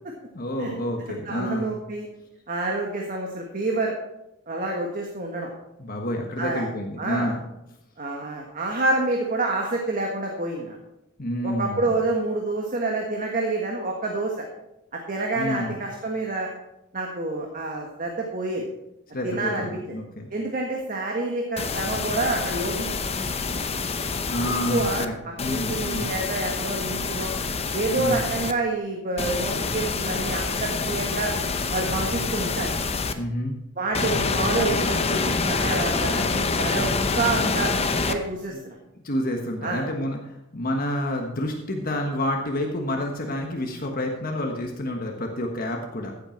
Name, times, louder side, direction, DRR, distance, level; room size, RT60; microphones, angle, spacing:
voice 1, 0.3-1.7 5.8-7.4 11.2-11.9 15.4-15.8 19.1-20.3 24.3-26.1 27.9-28.3 33.1-33.5 38.5-38.6 39.0-46.1, left 1 dB, 45° left, 2 dB, 1.4 m, -29 dB
voice 2, 1.2-2.1 2.5-3.9 4.5-5.5 6.4-6.7 7.0-7.3 8.0-10.8 11.4-14.4 14.9-16.5 16.9-18.7 19.2-19.7 20.3-23.1 24.4-25.1 25.5-27.3 27.7-31.3 31.7-32.7 33.8-37.7 38.1-38.7 39.6-39.8, right 2 dB, 45° right, 1 dB, 1.6 m, -28 dB
sound 1, 21.6-25.1 25.4-28.5 29.2-33.1 33.9-38.2, left 4 dB, 30° left, 0.8 m, -26 dB
15.0 x 7.9 x 4.5 m, 0.87 s
head